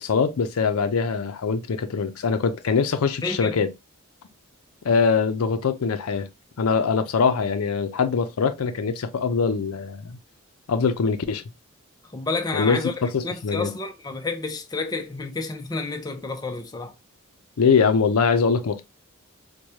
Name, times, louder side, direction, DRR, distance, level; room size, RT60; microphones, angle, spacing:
voice 1, 0.0-3.7 4.8-6.3 6.6-10.2 10.7-11.4 12.5-13.7 17.6-18.8, left 5 dB, 80° left, 0.5 m, -23 dB
voice 2, 3.2-3.6 12.1-16.9, left 3 dB, 20° left, 0.5 m, -30 dB
4.6 x 2.2 x 2.7 m
head